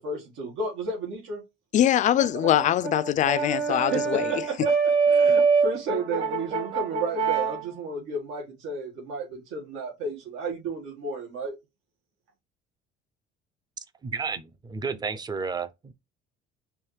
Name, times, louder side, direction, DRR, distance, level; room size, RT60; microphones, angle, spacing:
voice 1, 0.0-1.4 3.7-4.6 5.1-11.5, right 3 dB, 85° right, 1.8 m, -33 dB
voice 2, 1.7-4.3, left 11 dB, 40° left, 0.4 m, -22 dB
Brass instrument, 2.2-7.6, right 5 dB, 60° right, 2.1 m, -24 dB
voice 3, 14.0-15.9, right 5 dB, 20° right, 0.5 m, -32 dB
4.7 x 2.9 x 3.2 m
cardioid pair, 140°, 20 cm